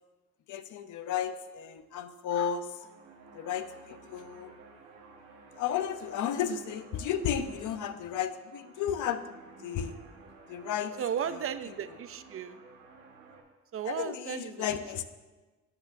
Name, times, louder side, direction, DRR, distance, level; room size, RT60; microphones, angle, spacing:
voice 1, 0.5-2.9 3.3-4.5 5.5-9.2 9.6-10.0 10.5-10.9 11.3-11.4 13.8-15.0, left 9 dB, 85° left, 10 dB, 0.7 m, -33 dB
sound 1, 2.3-13.4, right 4 dB, 85° right, 1.4 m, -54 dB
voice 2, 11.0-12.6 13.7-14.7, right 8 dB, 45° right, 12 dB, 0.5 m, -35 dB
12.5 x 8.1 x 2.7 m, 1.2 s
cardioid pair, 90°, 30 cm